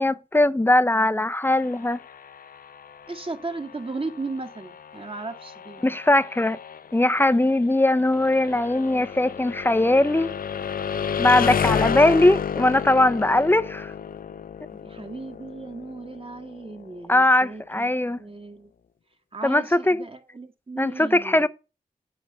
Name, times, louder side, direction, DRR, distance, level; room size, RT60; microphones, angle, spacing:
voice 1, 0.0-2.0 5.8-6.6 6.9-10.3 11.2-13.9 17.1-18.2 19.4-20.0 20.8-21.5, left 1 dB, 15° left, 0.6 m, -20 dB
sound 1, 1.4-17.3, left 7 dB, 65° left, 0.5 m, -32 dB
voice 2, 3.1-5.8 8.5-8.6 14.8-18.7 19.3-21.5, right 3 dB, 35° right, 1.7 m, -36 dB
8.9 x 5.0 x 5.6 m
cardioid pair, 50°, 16 cm